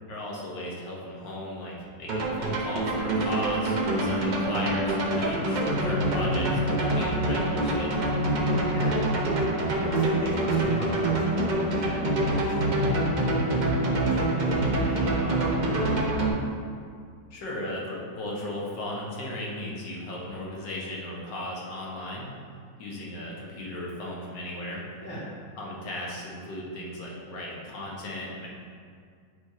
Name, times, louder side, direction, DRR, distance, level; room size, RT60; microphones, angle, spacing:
voice 1, 0.1-8.1 17.3-22.3 22.8-24.8 25.6-28.5, left 1 dB, 80° left, -4 dB, 1.8 m, -36 dB
sound 1, 2.1-16.3, right 1 dB, 75° right, 0.4 m, -26 dB
voice 2, 6.2-6.7 8.4-9.0 9.7-16.1 25.0-25.3, equal, 15° left, -9 dB, 1.4 m, -37 dB
8.2 x 2.8 x 4.7 m, 2.1 s
omnidirectional pair, 1.9 m